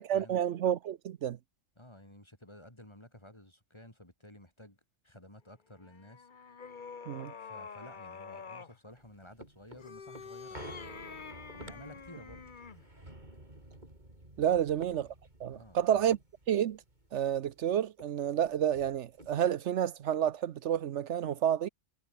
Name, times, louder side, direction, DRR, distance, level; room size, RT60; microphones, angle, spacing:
voice 1, 0.0-1.4 7.1-7.3 14.4-15.1 15.4-16.2 16.5-16.8 17.1-21.7, right 10 dB, 75° right, 1.0 m, -30 dB
voice 2, 1.8-4.8 5.0-6.3 7.4-10.6 11.6-12.5 14.4-14.7 15.5-16.0, left 1 dB, 25° left, 4.6 m, -53 dB
sound 1, 5.8-8.8 9.7-12.9, left 5 dB, 45° left, 1.3 m, -47 dB
sound 2, 8.9-17.6 18.0-18.1 18.3-19.7 20.2-20.3, right 1 dB, 40° right, 5.7 m, -52 dB
omnidirectional pair, 1.2 m